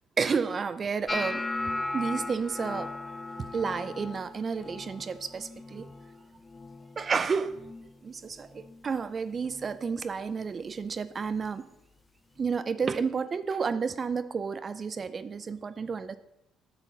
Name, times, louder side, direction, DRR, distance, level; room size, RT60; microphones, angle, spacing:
voice 1, 0.2-1.4 1.7-3.0 3.4-5.9 7.0-7.6 8.0-11.6 12.4-16.2, right 5 dB, 40° right, 13 dB, 0.4 m, -31 dB
sound 1, 1.1-7.2 7.4-8.0 8.3-8.8 9.5-9.7 11.4-11.5, left 2 dB, 25° left, 0.4 m, -37 dB
9.0 x 7.0 x 2.8 m, 0.88 s
supercardioid pair, 60°, 0 cm